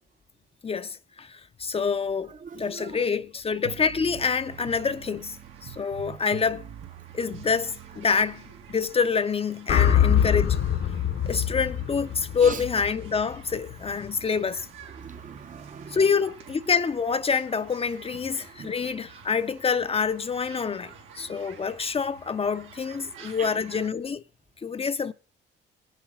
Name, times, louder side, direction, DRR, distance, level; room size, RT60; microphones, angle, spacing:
voice 1, 0.6-5.4 5.6-6.6 7.1-8.4 8.7-10.6 11.3-14.7 15.9-24.2 24.6-25.1, left 5 dB, 30° left, 0.6 m, -27 dB
voice 2, 2.3-3.0 12.4-12.6 14.9-16.0 18.4-18.7 23.4-23.5, right 6 dB, 40° right, 0.7 m, -41 dB
sound 1, 3.6-9.0, right 12 dB, 70° right, 0.9 m, -44 dB
sound 2, 4.2-23.9, right 6 dB, 90° right, 2.1 m, -50 dB
sound 3, 9.7-13.9, left 9 dB, 55° left, 1.0 m, -24 dB
17.5 x 7.3 x 6.1 m
cardioid pair, 90°, 20 cm